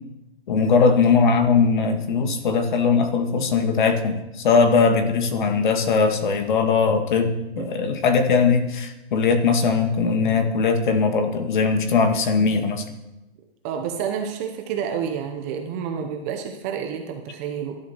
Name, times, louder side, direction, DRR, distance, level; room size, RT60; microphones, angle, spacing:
voice 1, 0.5-12.8, left 5 dB, 50° left, 6 dB, 2.0 m, -20 dB
voice 2, 13.6-17.8, right 7 dB, 15° right, 4 dB, 0.6 m, -29 dB
17.0 x 11.5 x 4.4 m, 0.99 s
hypercardioid pair, 160°, 32 cm